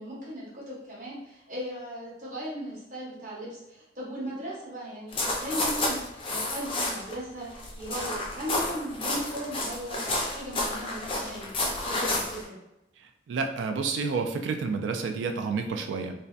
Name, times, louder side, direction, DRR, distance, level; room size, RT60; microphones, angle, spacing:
voice 1, 0.0-11.5 11.8-12.6, equal, 45° right, -6 dB, 0.8 m, -37 dB
sound 1, 5.1-7.1 7.4-12.4, left 2 dB, 30° left, 0.4 m, -30 dB
voice 2, 13.3-16.1, right 4 dB, 90° right, 5 dB, 0.3 m, -29 dB
2.7 x 2.1 x 2.3 m, 0.87 s
head